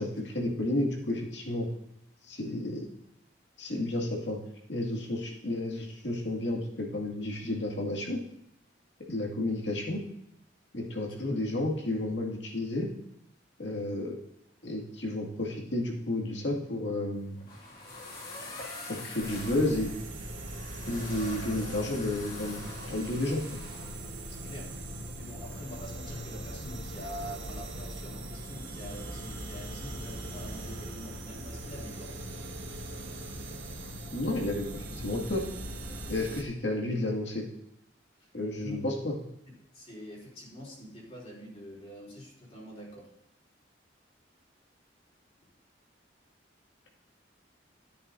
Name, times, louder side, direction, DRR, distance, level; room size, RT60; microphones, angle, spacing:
voice 1, 0.0-1.7 2.3-2.8 3.6-4.4 4.7-8.2 9.1-10.0 10.7-12.9 13.6-14.1 14.6-17.4 18.8-19.9 20.9-22.6 22.9-23.6 34.1-35.4 36.1-37.5 38.3-39.2, left 1 dB, 75° left, -1 dB, 2.2 m, -31 dB
sound 1, 17.1-24.0, left 2 dB, 50° left, 2.3 m, -44 dB
sound 2, 19.2-36.4, right 1 dB, 80° right, 1.6 m, -40 dB
voice 2, 24.3-24.7 25.1-32.2 38.6-38.8 39.7-43.1, equal, 35° left, -4 dB, 3.1 m, -45 dB
13.0 x 10.0 x 2.7 m, 0.77 s
head